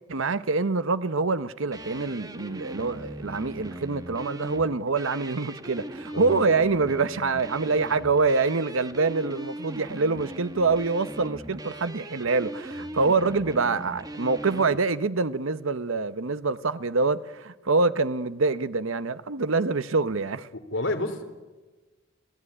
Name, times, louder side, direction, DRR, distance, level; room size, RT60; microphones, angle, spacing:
voice 1, 0.1-20.5, right 3 dB, 75° right, 0.9 m, -25 dB
sound 1, 1.7-14.8, right 1 dB, 20° right, 1.1 m, -39 dB
voice 2, 6.1-6.4 12.9-13.0 20.7-21.2, left 2 dB, 65° left, 3.6 m, -30 dB
28.0 x 17.0 x 9.9 m
head